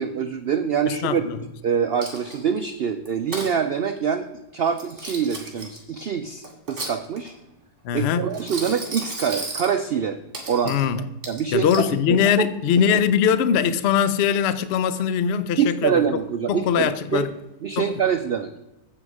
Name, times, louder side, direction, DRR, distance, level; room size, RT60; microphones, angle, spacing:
voice 1, 0.0-1.2 1.6-4.2 4.5-7.3 7.9-10.2 10.5-10.7 11.3-12.5 12.8-13.0 15.6-17.2 17.6-18.5, right 7 dB, 80° right, 0.5 m, -25 dB
voice 2, 0.9-1.4 7.8-8.3 10.6-11.0 11.5-16.2 16.5-17.3 17.8-17.9, left 8 dB, 60° left, 0.7 m, -21 dB
Coin (dropping), 2.0-2.6 3.1-3.5 4.7-5.8 6.4-7.4 8.3-9.7 10.3-10.9 11.2-11.9, right 2 dB, 45° right, 2.6 m, -34 dB
9.4 x 8.0 x 4.8 m
omnidirectional pair, 1.7 m